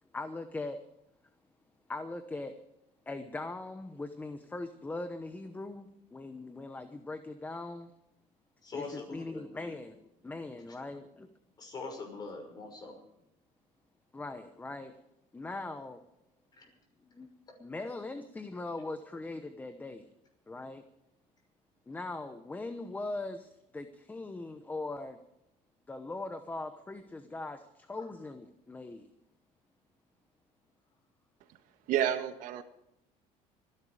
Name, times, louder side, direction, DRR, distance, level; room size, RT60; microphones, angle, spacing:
voice 1, 0.1-0.8 1.9-2.5 3.1-7.9 8.7-11.3 14.1-14.9 15.3-16.0 17.1-17.3 17.6-20.1 20.5-20.8 21.9-25.2 25.9-29.1, left 2 dB, 10° left, 9 dB, 0.9 m, -40 dB
voice 2, 8.6-9.7 10.8-10.9 11.6-13.0 16.6-16.7 28.0-28.1, left 3 dB, 30° left, 4 dB, 5.8 m, -43 dB
voice 3, 31.9-32.6, right 10 dB, 65° right, 9 dB, 1.5 m, -29 dB
25.0 x 11.0 x 4.9 m, 0.83 s
cardioid pair, 145°, 14 cm